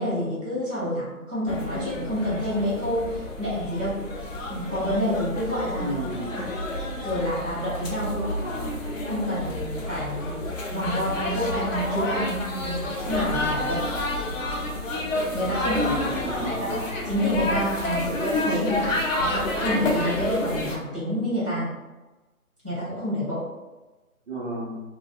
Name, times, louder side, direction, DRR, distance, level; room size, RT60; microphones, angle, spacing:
voice 1, 0.0-4.0 4.5-6.0 6.3-6.5 7.0-8.3 9.0-13.8 15.3-16.8 17.0-21.7 22.6-23.4, equal, 10° right, -24 dB, 0.9 m, -28 dB
sound 1, 1.5-20.8, left 1 dB, 60° left, 0.6 m, -29 dB
voice 2, 5.8-6.4 8.4-8.8 15.7-16.8 24.3-24.8, right 1 dB, 45° right, -7 dB, 1.0 m, -32 dB
3.2 x 2.3 x 2.3 m, 1.1 s
hypercardioid pair, 175°, 44 cm